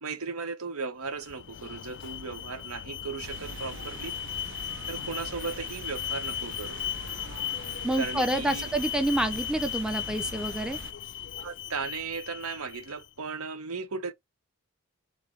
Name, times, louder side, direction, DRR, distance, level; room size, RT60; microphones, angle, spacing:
voice 1, 0.0-4.1 4.9-6.8 8.0-8.7 11.4-14.1, right 4 dB, 85° right, 0.9 m, -36 dB
Alarm, 1.1-13.1, left 10 dB, 55° left, 0.4 m, -37 dB
sound 1, 3.2-10.9, right 5 dB, 60° right, 0.5 m, -44 dB
voice 2, 7.8-10.8, right 1 dB, 5° right, 0.5 m, -28 dB
3.9 x 3.3 x 3.2 m
head